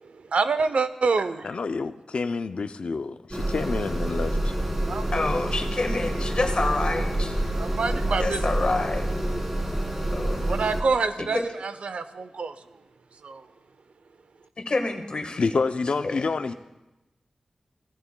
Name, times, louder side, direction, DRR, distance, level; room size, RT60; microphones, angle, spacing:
voice 1, 0.1-1.5 4.9-5.1 7.5-8.4 10.5-12.6 13.2-13.5, right 4 dB, 90° right, 11 dB, 0.6 m, -26 dB
voice 2, 1.4-4.6 15.4-16.5, left 4 dB, 70° left, 9 dB, 0.4 m, -28 dB
sound 1, 3.3-10.8, right 1 dB, 20° right, 1.7 m, -27 dB
voice 3, 5.1-7.4 8.2-9.1 10.1-10.5 11.2-11.5 14.6-15.5 16.0-16.3, left 3 dB, 55° left, 5 dB, 1.4 m, -28 dB
17.0 x 15.0 x 2.2 m, 1.0 s
wide cardioid pair, 90°, 2 cm